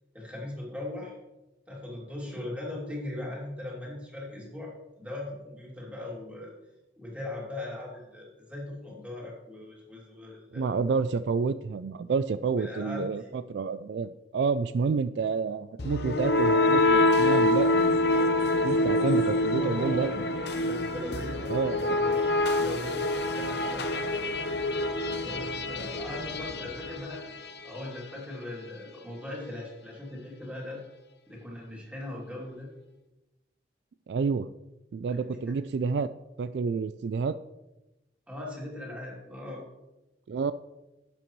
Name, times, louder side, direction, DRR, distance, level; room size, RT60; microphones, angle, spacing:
voice 1, 0.1-1.1 1.7-6.5 7.0-10.8 12.6-13.3 19.0-20.1 20.6-22.3 22.6-24.1 25.2-27.3 27.6-30.8 31.3-32.7 35.1-35.6 38.3-39.6, left 1 dB, 5° right, -4 dB, 2.7 m, -39 dB
voice 2, 10.5-18.0 18.6-20.2 21.5-21.8 34.1-34.5 34.9-36.1 36.4-37.4 40.3-40.5, right 5 dB, 65° right, 13 dB, 0.3 m, -29 dB
sound 1, 15.8-27.7, left 2 dB, 60° left, 0.8 m, -26 dB
11.5 x 8.6 x 3.1 m, 0.99 s
head